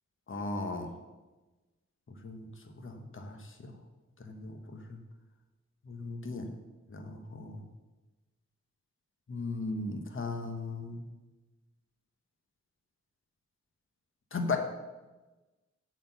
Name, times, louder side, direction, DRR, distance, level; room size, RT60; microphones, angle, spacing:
voice 1, 0.3-0.9 2.2-2.5 2.8-3.7 4.2-5.0 5.9-6.5 6.9-7.6 9.3-11.0 14.3-14.6, left 3 dB, 45° left, 4 dB, 1.1 m, -37 dB
8.4 x 4.3 x 7.0 m, 1.1 s
wide cardioid pair, 90°, 29 cm